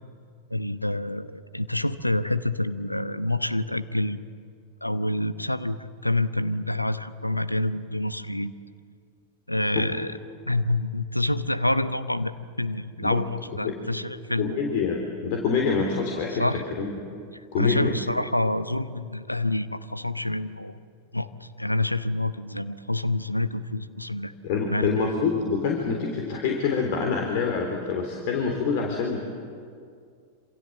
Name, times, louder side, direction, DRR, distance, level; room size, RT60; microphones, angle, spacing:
voice 1, 0.5-4.2 4.8-8.5 9.5-10.2 10.5-14.6 16.4-16.6 17.6-20.8 21.1-24.3 24.7-25.1, left 1 dB, 85° left, 13 dB, 1.0 m, -27 dB
voice 2, 14.4-16.5 16.8-16.9 17.5-17.9 24.4-29.2, left 5 dB, 50° left, 2 dB, 3.5 m, -26 dB
27.0 x 27.0 x 7.7 m, 2.2 s
figure-of-eight pair, 90°, 0 cm